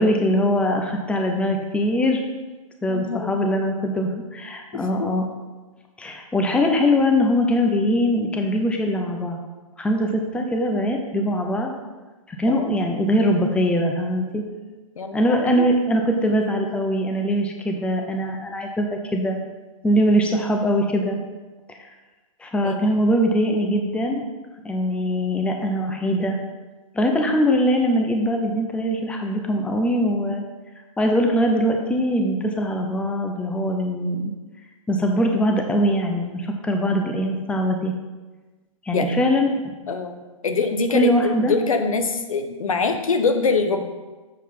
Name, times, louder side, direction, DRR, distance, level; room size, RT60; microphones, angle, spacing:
voice 1, 0.0-2.2 2.8-5.2 6.0-9.4 9.8-11.7 12.3-14.4 15.1-19.4 19.8-21.2 22.4-24.2 24.6-26.4 26.9-30.4 31.0-34.3 34.9-37.9 38.8-39.5 40.9-41.5, equal, 5° left, 3 dB, 0.7 m, -22 dB
voice 2, 2.9-3.6 4.7-5.1 12.5-12.7 15.0-15.7 22.6-23.0 38.9-39.2 39.9-40.1 40.4-41.1 41.4-43.8, left 4 dB, 75° left, 6 dB, 1.1 m, -24 dB
7.5 x 4.5 x 5.6 m, 1.2 s
hypercardioid pair, 120°, 18 cm